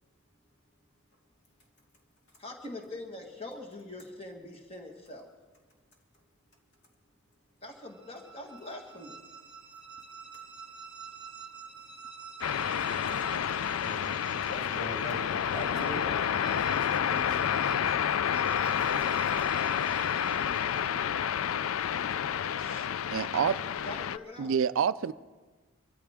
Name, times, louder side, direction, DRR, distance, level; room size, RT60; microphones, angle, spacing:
voice 1, 2.4-5.3 7.6-9.2 20.4-21.0 23.6-24.5 25.0-25.1, left 1 dB, 25° left, 1.6 m, -43 dB
sound 1, 7.8-21.2, right 6 dB, 5° right, 1.4 m, -47 dB
sound 2, 12.4-24.2, left 9 dB, 70° left, 0.4 m, -29 dB
voice 2, 13.8-14.1 14.5-15.2 15.5-17.9 18.7-18.8, equal, 50° left, 2.8 m, -41 dB
voice 3, 23.1-23.6 24.4-25.1, right 7 dB, 65° right, 0.3 m, -28 dB
24.5 x 13.5 x 3.6 m
head